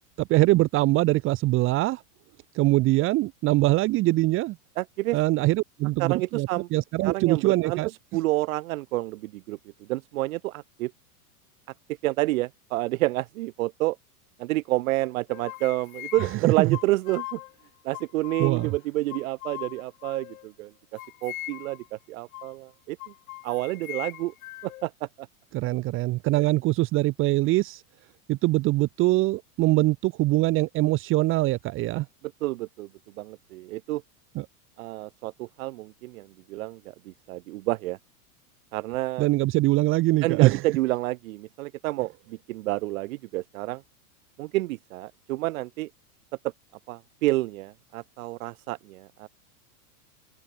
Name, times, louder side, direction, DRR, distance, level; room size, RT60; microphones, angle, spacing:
voice 1, 0.0-2.0 2.5-4.6 5.1-7.9 16.2-16.7 18.4-18.7 25.5-27.8 28.3-32.1 34.3-34.5 39.2-40.6, right 19 dB, 25° right, 1.0 m, -23 dB
voice 2, 4.8-5.2 6.0-6.7 7.0-7.8 8.1-9.6 9.9-10.9 12.0-14.0 14.4-17.4 17.8-20.7 21.2-23.0 23.4-24.3 24.6-24.9 25.2-25.3 26.4-26.5 32.4-32.9 33.2-34.0 34.8-36.9 37.3-38.0 38.7-39.2 40.2-43.8 44.4-45.9 46.9-49.3, right 18 dB, 60° right, 1.2 m, -29 dB
sound 1, 15.0-17.5 17.9-18.8 19.1-20.5 21.0-21.9 22.3-22.5 23.0-24.9, left 17 dB, 65° left, 2.8 m, -40 dB
open air
supercardioid pair, 150°, 46 cm